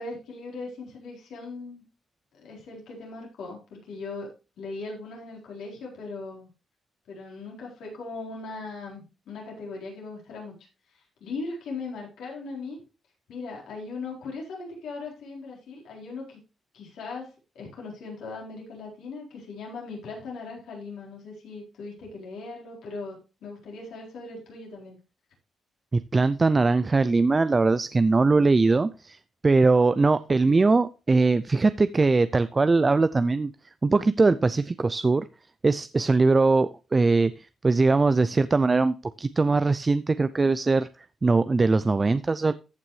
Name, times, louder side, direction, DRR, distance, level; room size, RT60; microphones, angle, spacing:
voice 1, 0.0-1.8 2.3-4.3 4.6-6.5 7.1-12.8 13.3-16.4 16.7-25.0, left 3 dB, 85° left, -2 dB, 4.2 m, -39 dB
voice 2, 25.9-29.2 29.4-33.5 33.8-35.3 35.6-40.9 41.2-42.5, right 3 dB, 30° right, 14 dB, 0.4 m, -21 dB
14.5 x 5.9 x 3.2 m, 0.31 s
cardioid pair, 80°, 0 cm